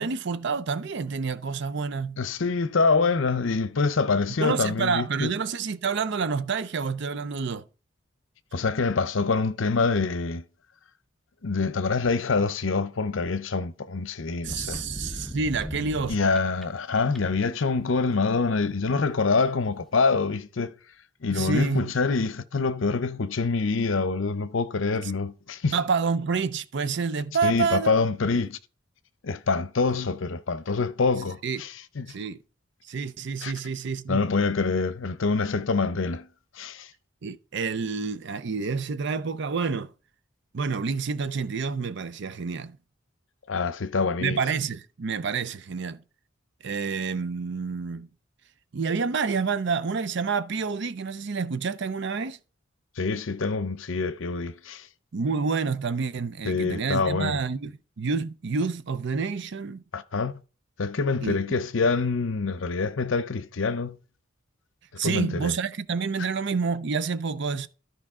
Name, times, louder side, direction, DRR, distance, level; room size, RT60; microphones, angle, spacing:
voice 1, 0.0-2.2 4.4-7.6 14.4-16.4 21.3-21.9 25.7-28.0 28.3-28.5 31.4-31.6 32.1-32.4 32.9-34.2 37.2-39.9 40.5-42.8 44.2-46.0 46.6-48.1 48.7-52.4 55.1-59.8 61.2-61.4 65.0-67.7, right 5 dB, 60° right, 0.6 m, -28 dB
voice 2, 2.2-5.3 8.5-10.4 11.4-14.8 16.1-20.7 21.2-25.8 27.4-28.6 29.2-32.1 33.4-33.5 34.1-36.3 36.6-36.9 43.5-44.4 53.0-54.9 56.4-57.4 59.9-60.3 60.8-64.0 65.0-65.5, left 4 dB, 70° left, 0.7 m, -26 dB
sound 1, 14.4-16.6 17.0-17.4, equal, ahead, 1.0 m, -36 dB
13.0 x 5.2 x 3.7 m
head